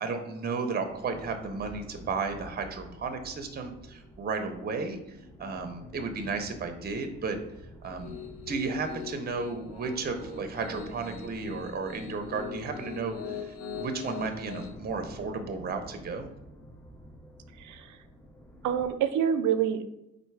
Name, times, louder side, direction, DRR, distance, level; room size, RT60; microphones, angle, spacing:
voice 1, 0.0-7.4 7.8-8.2 8.5-16.3, right 4 dB, 30° right, 6 dB, 0.7 m, -34 dB
sound 1, 0.8-18.9, equal, 5° left, 0.6 m, -49 dB
Piano, 7.8-14.7, left 6 dB, 55° left, 1.1 m, -41 dB
voice 2, 17.6-18.0 18.6-19.8, right 8 dB, 75° right, 10 dB, 0.5 m, -27 dB
4.3 x 2.6 x 4.7 m, 0.89 s
cardioid pair, 90°, 30 cm